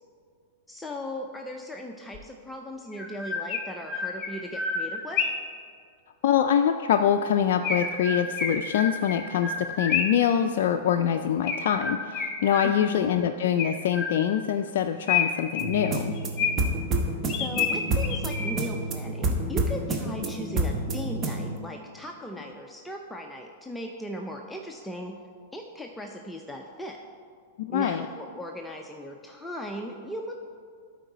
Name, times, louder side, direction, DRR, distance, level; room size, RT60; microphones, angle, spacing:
voice 1, 0.7-5.2 12.6-13.1 17.2-25.1 25.5-27.0 27.7-30.3, left 1 dB, 5° left, 1 dB, 0.6 m, -38 dB
Chirp tweet, 2.1-2.2 2.9-5.5 7.6-10.3 11.5-13.0 13.6-14.5 15.1-16.8 17.3-18.8, left 5 dB, 35° left, 1.1 m, -30 dB
voice 2, 6.2-16.1 27.6-28.1, left 9 dB, 65° left, 5 dB, 0.3 m, -24 dB
sound 1, 15.6-21.6, right 2 dB, 30° right, 1.1 m, -29 dB
12.5 x 4.6 x 4.0 m, 2.1 s
hypercardioid pair, 105°, 0 cm